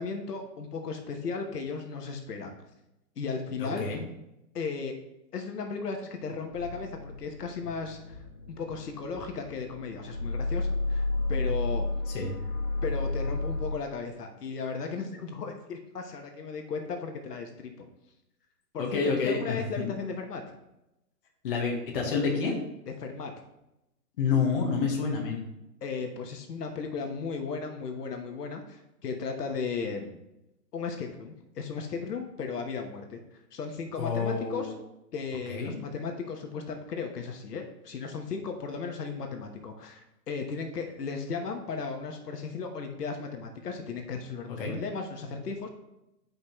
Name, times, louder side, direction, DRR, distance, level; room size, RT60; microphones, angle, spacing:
voice 1, 0.0-2.6 3.2-3.8 4.5-4.9 5.3-8.2 8.5-11.9 12.8-17.9 18.7-20.4 23.0-23.3 25.8-30.2 30.7-33.2 33.5-34.7 35.1-45.7, left 5 dB, 70° left, 4 dB, 1.2 m, -35 dB
voice 2, 3.6-4.0 12.1-12.3 18.8-19.9 21.4-22.5 24.2-25.4 34.0-34.7 35.5-35.7 44.6-44.7, left 5 dB, 35° left, -1 dB, 1.3 m, -28 dB
sound 1, 6.5-13.8, left 2 dB, 50° left, 2.0 m, -32 dB
9.7 x 5.3 x 3.1 m, 0.88 s
hypercardioid pair, 165°, 49 cm